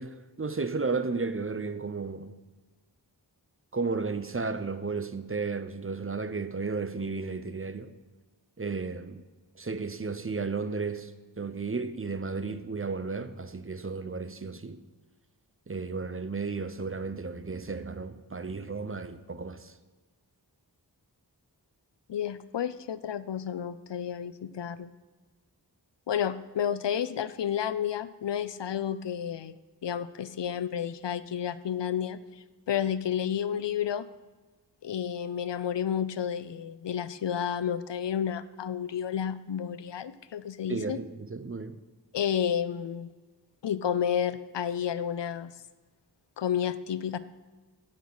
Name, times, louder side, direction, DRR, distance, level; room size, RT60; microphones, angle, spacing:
voice 1, 0.0-2.3 3.7-7.9 8.6-9.2 9.6-11.1 11.4-14.8 15.7-19.7 40.7-41.8, right 4 dB, 30° right, 0.7 m, -33 dB
voice 2, 22.1-24.9 26.1-29.5 29.8-34.1 34.8-41.0 42.1-43.1 43.6-45.5 46.4-47.2, left 9 dB, 90° left, 0.5 m, -31 dB
15.5 x 6.4 x 4.0 m
wide cardioid pair, 45°, 42 cm